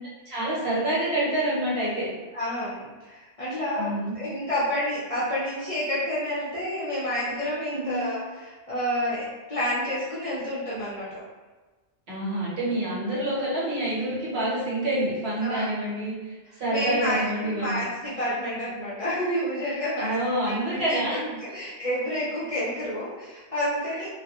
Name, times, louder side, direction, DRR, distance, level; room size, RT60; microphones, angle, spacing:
voice 1, 0.3-2.1 3.8-4.1 7.8-8.0 12.1-17.8 20.0-21.2 23.9-24.1, right 1 dB, 70° right, -8 dB, 1.2 m, -27 dB
voice 2, 2.3-11.2 15.4-15.7 16.5-20.2 20.5-24.1, equal, 45° left, -10 dB, 0.4 m, -29 dB
2.3 x 2.1 x 2.8 m, 1.3 s
omnidirectional pair, 1.1 m